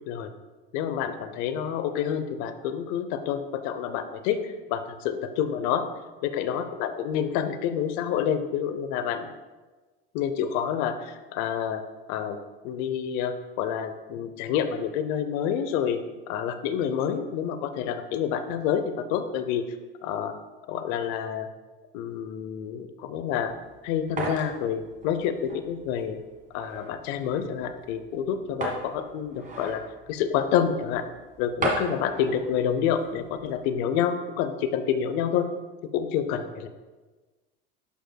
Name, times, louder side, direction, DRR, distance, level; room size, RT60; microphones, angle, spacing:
voice 1, 0.7-5.8 6.2-9.3 10.1-11.8 12.1-12.4 12.6-16.0 16.3-19.6 20.0-20.3 20.7-21.5 21.9-23.5 23.8-26.2 26.5-29.8 30.1-31.1 31.4-35.5 35.9-36.7, left 8 dB, 65° left, 10 dB, 0.7 m, -28 dB
sound 1, 23.3-33.7, right 2 dB, 25° right, 1.7 m, -37 dB
11.5 x 5.2 x 2.3 m, 1.3 s
supercardioid pair, 110°, 29 cm